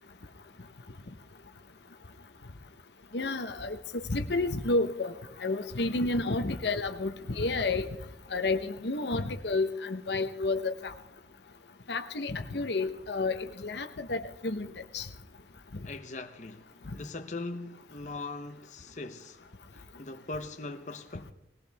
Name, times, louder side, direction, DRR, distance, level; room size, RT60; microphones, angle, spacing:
voice 1, 3.1-5.1 5.4-7.9 8.3-10.9 11.9-14.7 14.9-15.1 15.7-15.8, left 3 dB, 65° left, 0.9 m, -30 dB
voice 2, 15.8-19.4 19.7-21.3, left 3 dB, 40° left, 0.8 m, -40 dB
21.0 x 18.0 x 3.4 m
head